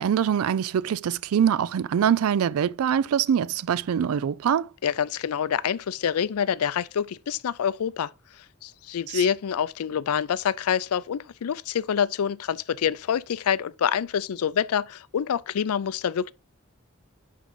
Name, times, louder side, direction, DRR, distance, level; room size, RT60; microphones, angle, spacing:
voice 1, 0.0-4.7 9.1-9.2, right 8 dB, 75° right, 0.3 m, -24 dB
voice 2, 4.8-8.1 8.6-16.3, left 8 dB, 85° left, 0.4 m, -26 dB
11.0 x 3.7 x 3.7 m
head